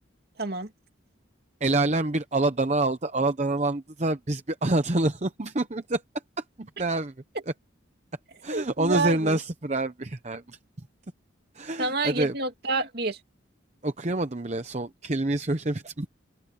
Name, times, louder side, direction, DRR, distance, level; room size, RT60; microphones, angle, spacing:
voice 1, 0.4-0.7 8.5-9.4 11.8-13.2, right 3 dB, 50° right, 2.8 m, -28 dB
voice 2, 1.6-6.0 6.6-7.1 8.4-10.6 11.5-12.3 13.8-16.1, right 2 dB, 35° right, 0.9 m, -27 dB
open air
head